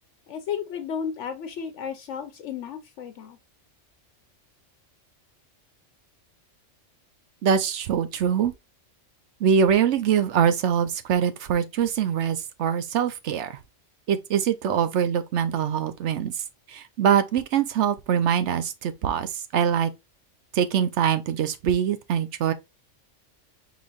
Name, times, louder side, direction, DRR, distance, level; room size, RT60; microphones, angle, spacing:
voice 1, 0.3-3.4, left 7 dB, 75° left, 0.9 m, -33 dB
voice 2, 7.4-8.5 9.4-13.6 14.1-16.3 16.7-19.9 20.5-22.5, right 8 dB, 70° right, 0.9 m, -23 dB
5.0 x 3.9 x 2.4 m
omnidirectional pair, 1.3 m